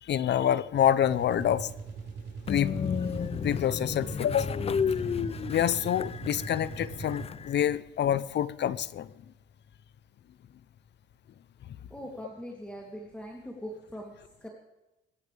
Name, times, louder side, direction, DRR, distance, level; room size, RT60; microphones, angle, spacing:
voice 1, 0.0-1.7 2.5-2.8 3.4-4.6 5.5-9.1, left 10 dB, 60° left, 0.8 m, -27 dB
sound 1, 1.0-7.5, right 5 dB, 80° right, 5.2 m, -41 dB
Train, 2.5-7.8, left 7 dB, 30° left, 0.4 m, -32 dB
voice 2, 11.9-14.1 14.4-14.5, equal, 5° left, 3.1 m, -41 dB
25.5 x 12.5 x 3.5 m
cardioid pair, 90°, 20 cm